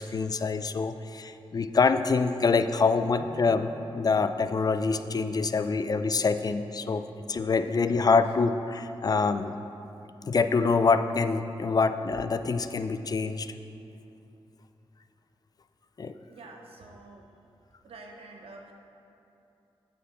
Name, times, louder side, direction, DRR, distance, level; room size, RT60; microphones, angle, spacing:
voice 1, 0.0-3.7 3.9-9.6 10.2-13.5 16.0-16.1, left 4 dB, 40° left, 10 dB, 0.4 m, -25 dB
sound 1, 3.2-11.3 11.8-11.9, left 2 dB, 75° left, 1.1 m, -52 dB
voice 2, 16.3-17.3 17.8-18.7, right 3 dB, 80° right, 2 dB, 0.9 m, -47 dB
8.6 x 5.9 x 4.7 m, 2.7 s
wide cardioid pair, 90°, 10 cm